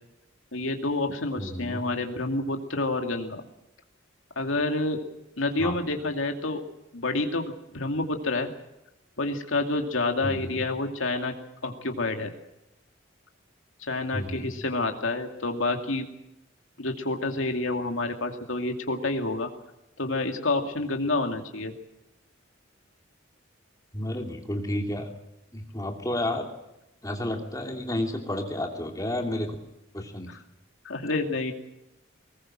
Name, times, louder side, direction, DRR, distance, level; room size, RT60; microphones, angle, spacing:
voice 1, 0.5-3.4 4.4-5.0 5.4-6.6 6.9-8.5 9.2-11.3 11.6-12.3 13.9-16.1 16.8-19.5 20.0-21.7 30.3-30.4 30.8-31.5, left 2 dB, 75° left, 4 dB, 2.5 m, -28 dB
voice 2, 1.4-1.8 5.6-5.8 10.2-10.5 14.1-14.5 23.9-25.1 25.5-26.5 27.0-29.5 29.9-30.3, left 1 dB, 15° left, 3 dB, 3.0 m, -31 dB
20.5 x 19.5 x 7.5 m, 0.90 s
head